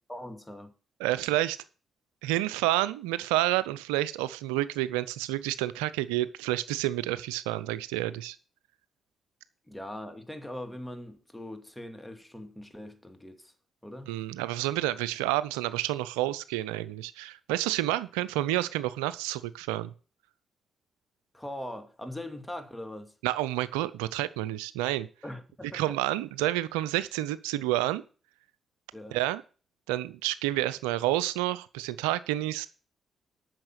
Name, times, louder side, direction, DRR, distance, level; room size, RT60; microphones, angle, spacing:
voice 1, 0.1-0.7 9.7-13.5 13.8-14.2 21.3-23.1 25.2-26.0 28.9-29.2, left 1 dB, 10° left, 2.4 m, -41 dB
voice 2, 1.0-1.6 2.2-8.4 14.1-19.9 23.2-25.1 25.7-28.0 29.1-29.4 29.9-32.7, right 15 dB, 85° right, 0.5 m, -29 dB
8.7 x 6.5 x 8.0 m
hypercardioid pair, 45°, 0 cm